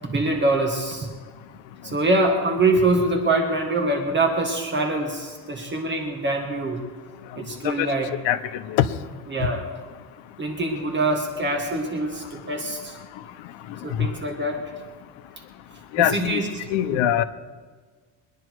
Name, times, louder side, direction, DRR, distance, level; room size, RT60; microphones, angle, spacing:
voice 1, 0.0-1.1 1.8-6.8 7.4-8.1 9.3-9.6 10.4-13.0 13.8-14.6 16.0-16.4 16.9-17.0, right 2 dB, 25° right, 2 dB, 1.9 m, -24 dB
voice 2, 7.6-8.9 9.4-9.5 13.9-14.1 15.9-16.4 16.7-17.2, left 11 dB, 75° left, 11 dB, 0.9 m, -23 dB
23.5 x 10.0 x 4.7 m, 1.5 s
cardioid pair, 150°, 45 cm